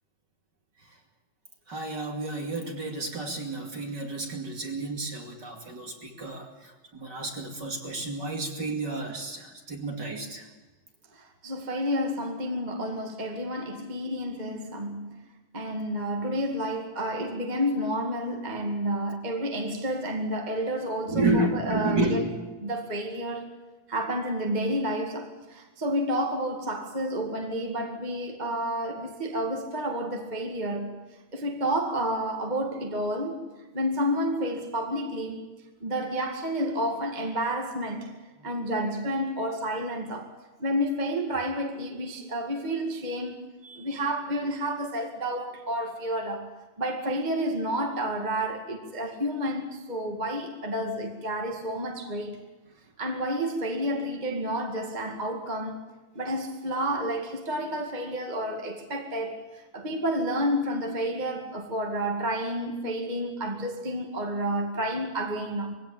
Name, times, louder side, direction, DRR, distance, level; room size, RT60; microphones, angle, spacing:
voice 1, 1.7-10.5 21.1-22.3 38.4-38.5 39.5-39.6 43.6-44.0, right 2 dB, 35° right, 2.7 m, -31 dB
voice 2, 11.1-15.1 15.5-22.2 22.6-23.5 23.9-30.9 31.3-33.5 33.7-35.5 35.8-38.1 38.4-40.3 40.6-43.4 43.8-46.5 46.8-52.4 53.0-55.8 56.1-59.5 59.7-65.7, equal, 15° right, 1.6 m, -30 dB
22.0 x 17.0 x 8.9 m
omnidirectional pair, 3.8 m